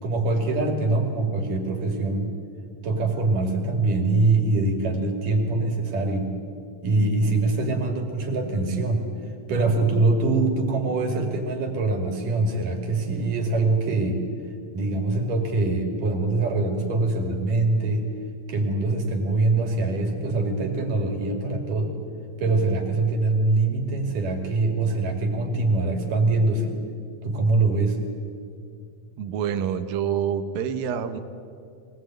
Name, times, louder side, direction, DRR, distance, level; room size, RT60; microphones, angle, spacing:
voice 1, 0.0-2.3 2.8-6.3 6.8-9.1 9.5-14.2 14.7-18.1 18.5-21.9 22.4-26.8 27.2-28.0, right 3 dB, 70° right, 3 dB, 4.0 m, -23 dB
voice 2, 29.2-31.2, right 8 dB, 90° right, 8 dB, 2.9 m, -27 dB
23.5 x 19.5 x 9.0 m, 2.4 s
omnidirectional pair, 3.9 m